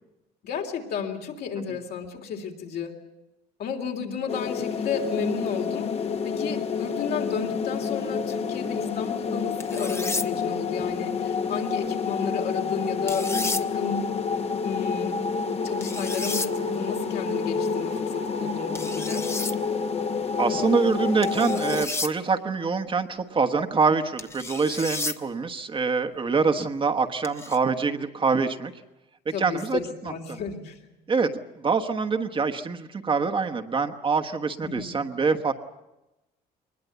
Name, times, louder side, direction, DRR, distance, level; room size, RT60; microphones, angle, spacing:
voice 1, 0.4-3.0 3.6-14.1 14.6-15.2 15.6-19.3 29.3-30.8 34.6-34.9, left 6 dB, 70° left, 2 dB, 3.3 m, -33 dB
sound 1, 4.3-21.8, left 5 dB, 40° left, 1.2 m, -28 dB
sound 2, 9.6-10.3 13.1-13.6 15.8-16.5 18.7-19.5 21.2-22.1 24.2-25.2 27.2-27.6, left 3 dB, 15° left, 0.9 m, -32 dB
voice 2, 20.4-28.7 29.4-30.4 31.1-31.3 31.6-35.5, right 4 dB, 30° right, 6 dB, 1.2 m, -25 dB
23.0 x 20.5 x 8.1 m, 0.97 s
cardioid pair, 110°, 17 cm